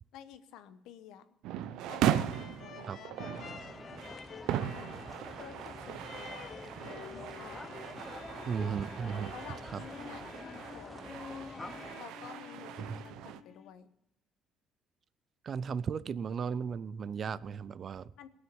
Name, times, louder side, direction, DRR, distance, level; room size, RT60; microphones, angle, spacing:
voice 1, 0.1-1.2 1.9-3.6 4.5-5.1 5.4-7.7 9.3-11.2 12.0-13.9 18.2-18.3, left 9 dB, 80° left, 11 dB, 1.0 m, -51 dB
sound 1, 1.4-13.4, right 11 dB, 80° right, 0.6 m, -38 dB
sound 2, 2.3-13.7, left 7 dB, 45° left, 0.8 m, -50 dB
sound 3, 3.3-12.0, left 2 dB, 15° left, 0.6 m, -47 dB
voice 2, 8.5-9.3 9.7-9.8 12.8-12.9 15.4-18.1, right 6 dB, 40° right, 18 dB, 0.4 m, -35 dB
19.0 x 6.5 x 7.0 m, 0.89 s
cardioid pair, 130°, 0 cm